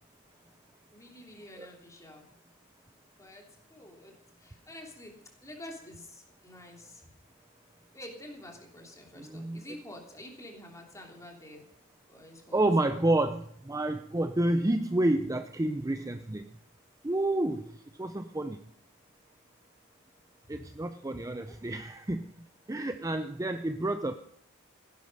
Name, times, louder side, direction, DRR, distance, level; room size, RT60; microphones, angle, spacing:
voice 1, 0.9-2.3 3.2-3.4 3.7-4.1 4.4-5.1 5.4-7.1 7.9-11.6 12.1-12.6 20.4-20.8 21.5-21.6 22.7-22.8 24.1-24.2, left 1 dB, 15° left, 1 dB, 3.2 m, -48 dB
voice 2, 9.2-9.6 12.5-16.4 17.0-17.7 18.0-18.6 20.5-22.2 22.7-24.1, right 1 dB, 15° right, 9 dB, 0.5 m, -29 dB
15.5 x 11.5 x 5.4 m, 0.71 s
head